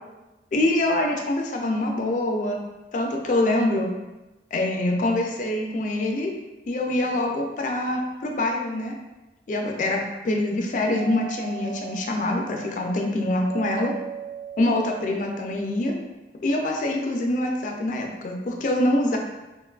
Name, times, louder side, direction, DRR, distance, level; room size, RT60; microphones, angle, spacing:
voice 1, 0.5-2.6 2.9-3.9 4.5-6.3 6.7-8.9 9.5-10.0 10.2-13.9 14.6-16.0 16.4-19.2, left 1 dB, 45° left, 2 dB, 0.3 m, -25 dB
Doorbell, 10.8-15.7, right 11 dB, 50° right, 0.4 m, -39 dB
3.7 x 2.2 x 2.3 m, 1.1 s
head